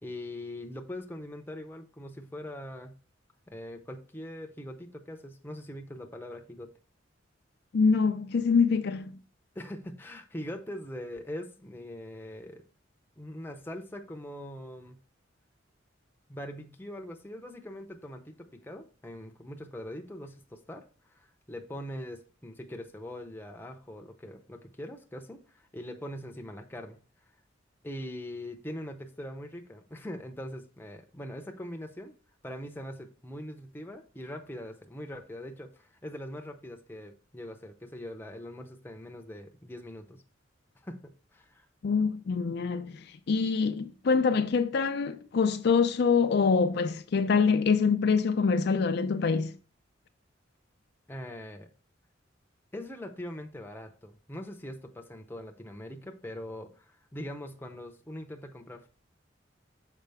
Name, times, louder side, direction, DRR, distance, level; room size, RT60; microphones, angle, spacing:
voice 1, 0.0-2.9 3.5-6.7 9.5-12.6 13.2-15.0 16.3-27.0 27.8-32.1 32.4-40.2 40.8-41.7 51.1-51.7 52.7-58.9, left 1 dB, 10° left, 0.7 m, -42 dB
voice 2, 7.7-9.1 41.8-49.6, left 5 dB, 55° left, 0.4 m, -25 dB
6.6 x 4.8 x 3.4 m
head